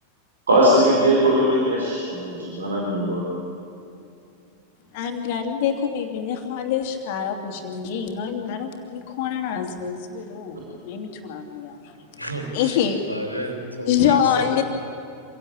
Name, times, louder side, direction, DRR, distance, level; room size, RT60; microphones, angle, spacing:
voice 1, 0.5-3.2, right 1 dB, 70° right, -4 dB, 4.3 m, -19 dB
voice 2, 4.9-11.9 12.5-13.0 13.8-14.6, left 8 dB, 50° left, 5 dB, 2.7 m, -25 dB
voice 3, 12.2-12.8 13.1-14.6, right 1 dB, 90° left, 3 dB, 3.2 m, -31 dB
26.0 x 17.0 x 8.7 m, 2.7 s
figure-of-eight pair, 90°, 0 cm